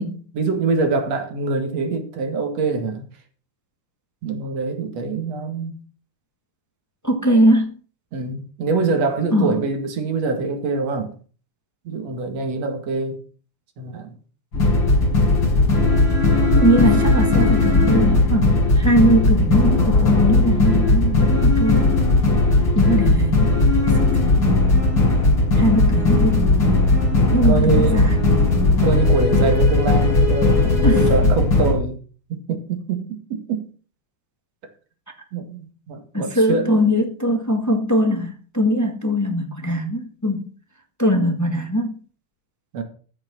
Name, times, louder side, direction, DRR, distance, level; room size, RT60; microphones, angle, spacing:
voice 1, 0.0-3.1 4.2-5.7 8.1-11.1 11.8-13.2 13.8-14.1 27.3-28.1 28.8-32.0 32.3-33.7 35.3-36.9 42.7-42.8, right 4 dB, 55° right, 3.1 m, -24 dB
voice 2, 7.0-7.7 9.3-9.5 16.5-21.9 22.7-23.5 24.0-24.4 25.6-26.5 27.3-28.5 30.8-31.1 36.1-40.5 41.0-42.0, equal, 15° left, 0.6 m, -20 dB
sound 1, 14.5-31.8, left 2 dB, 35° left, 6.3 m, -17 dB
14.5 x 6.5 x 6.1 m
omnidirectional pair, 3.7 m